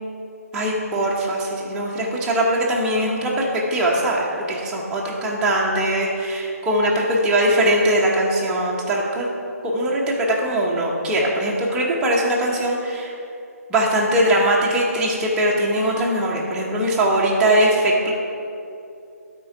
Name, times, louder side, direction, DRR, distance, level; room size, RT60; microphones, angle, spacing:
voice 1, 0.5-9.3 9.6-10.1 10.4-13.1 13.7-18.1, right 1 dB, 10° right, -4 dB, 0.8 m, -21 dB
12.0 x 4.5 x 4.7 m, 2.7 s
hypercardioid pair, 160°, 9 cm